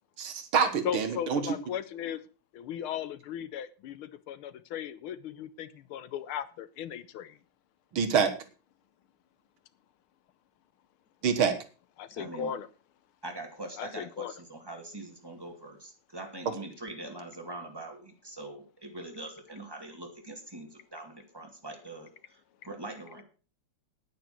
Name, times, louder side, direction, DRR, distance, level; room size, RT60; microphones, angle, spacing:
voice 1, 0.2-1.5 7.9-8.3 11.2-11.5, right 6 dB, 70° right, 2.2 m, -26 dB
voice 2, 0.8-2.2 2.5-7.4 12.0-12.7 13.8-14.3, left 9 dB, 75° left, 1.6 m, -37 dB
voice 3, 12.2-12.5 13.2-23.2, right 2 dB, 10° right, 2.8 m, -43 dB
9.7 x 9.5 x 6.2 m
omnidirectional pair, 2.4 m